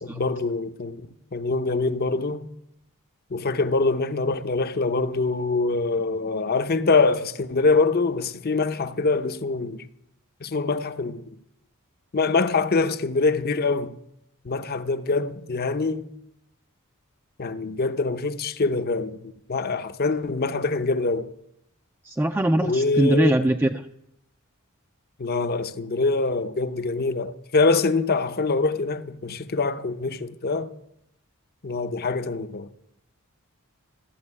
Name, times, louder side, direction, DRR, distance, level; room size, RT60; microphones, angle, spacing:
voice 1, 0.0-1.0 1.3-2.5 3.3-9.9 10.4-11.3 12.1-13.9 14.4-16.1 17.4-19.2 19.5-21.3 22.6-23.4 25.2-30.7 31.6-32.7, left 3 dB, 45° left, 0.7 m, -24 dB
voice 2, 22.0-23.8, right 1 dB, 10° right, 0.4 m, -22 dB
14.5 x 7.3 x 9.7 m
head